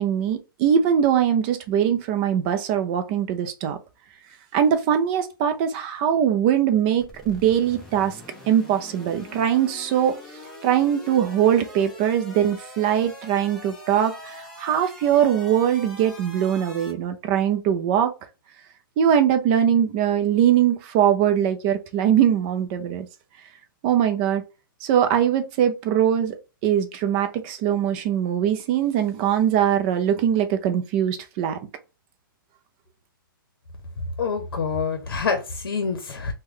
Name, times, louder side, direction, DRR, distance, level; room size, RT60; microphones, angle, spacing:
voice 1, 0.0-3.8 4.5-8.1 8.5-10.1 10.6-18.1 19.0-23.1 23.8-24.4 24.8-26.4 26.6-31.6, right 9 dB, 25° right, 0.4 m, -21 dB
sound 1, 7.0-16.9, left 1 dB, 5° left, 0.7 m, -43 dB
voice 2, 34.2-36.3, left 5 dB, 75° left, 0.7 m, -26 dB
3.1 x 2.2 x 3.6 m
hypercardioid pair, 155°, 12 cm